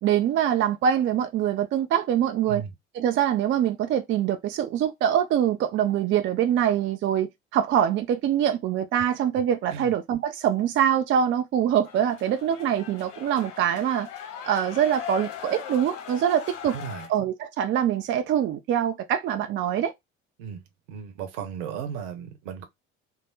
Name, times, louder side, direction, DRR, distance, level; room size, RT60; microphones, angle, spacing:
voice 1, 0.0-2.6 2.9-14.1 14.4-16.8 17.1-19.9, right 9 dB, 30° right, 0.5 m, -24 dB
sound 1, 11.9-17.1, left 9 dB, 65° left, 0.8 m, -40 dB
voice 2, 16.7-17.1 20.4-20.6 20.9-22.6, right 8 dB, 65° right, 1.0 m, -35 dB
3.3 x 2.1 x 3.8 m
figure-of-eight pair, 60°, 40 cm